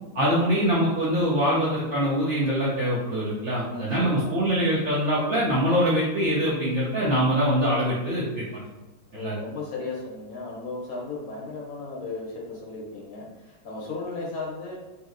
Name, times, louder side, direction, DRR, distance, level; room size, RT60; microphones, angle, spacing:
voice 1, 0.1-8.6 9.1-9.4, equal, 65° right, -7 dB, 0.7 m, -24 dB
voice 2, 3.6-4.9 9.1-14.8, left 3 dB, 65° left, -3 dB, 0.9 m, -36 dB
2.9 x 2.8 x 2.4 m, 1.1 s
omnidirectional pair, 1.9 m